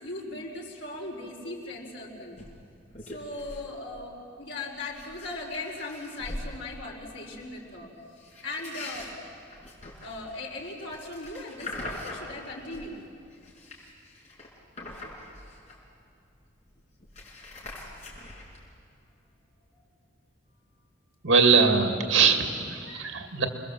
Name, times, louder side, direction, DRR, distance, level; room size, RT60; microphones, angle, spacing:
voice 1, 0.0-2.4 3.0-7.9 8.4-9.1 10.0-13.0 19.7-19.8 23.3-23.4, left 2 dB, 65° left, -1 dB, 4.9 m, -38 dB
sound 1, 2.3-2.5 2.9-3.7 3.9-4.2 4.7-6.5 8.2-12.9 13.3-16.0 16.4-16.5 16.7-18.6, left 2 dB, 40° left, 5.5 m, -42 dB
voice 2, 21.2-23.5, right 5 dB, 80° right, 5 dB, 2.3 m, -22 dB
28.5 x 21.0 x 7.7 m, 2.6 s
head